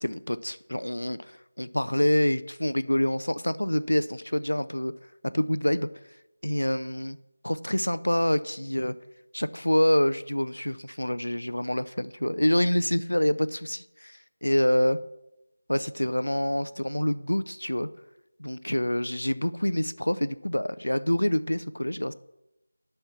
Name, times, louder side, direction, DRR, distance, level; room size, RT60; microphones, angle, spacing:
voice 1, 0.0-4.9 5.2-5.9 6.4-7.2 7.4-9.0 9.3-15.0 15.7-17.9 18.4-22.1, left 1 dB, 90° left, 15 dB, 0.5 m, -26 dB
11.5 x 4.5 x 7.2 m, 0.91 s
figure-of-eight pair, 170°, 0 cm